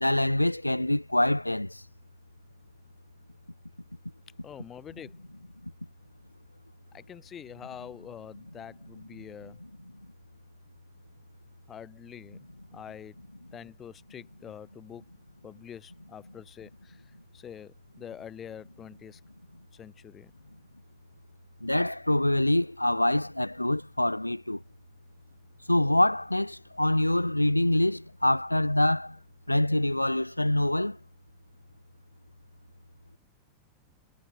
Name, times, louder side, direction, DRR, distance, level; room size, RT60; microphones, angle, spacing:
voice 1, 0.0-1.8 21.6-24.6 25.7-29.2 29.5-31.0, left 1 dB, 85° left, 0.3 m, -25 dB
voice 2, 4.4-5.1 6.9-9.6 11.7-13.2 13.5-15.0 15.4-19.2 19.7-20.3, left 9 dB, 25° left, 6.3 m, -46 dB
figure-of-eight pair, 90°, 0 cm